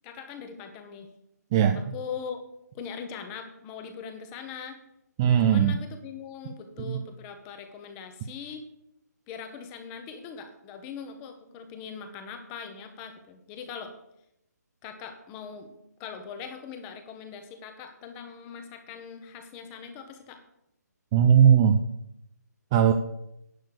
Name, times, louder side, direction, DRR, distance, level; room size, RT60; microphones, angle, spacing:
voice 1, 0.0-1.1 1.7-2.4 2.7-4.8 5.4-8.6 9.3-13.9 14.8-15.7 16.0-20.4, left 6 dB, 15° left, 7 dB, 1.0 m, -41 dB
voice 2, 5.2-5.8 6.8-7.0 21.1-21.8 22.7-22.9, right 8 dB, 15° right, 6 dB, 0.3 m, -19 dB
10.5 x 6.5 x 6.6 m, 0.80 s
hypercardioid pair, 160°, 10 cm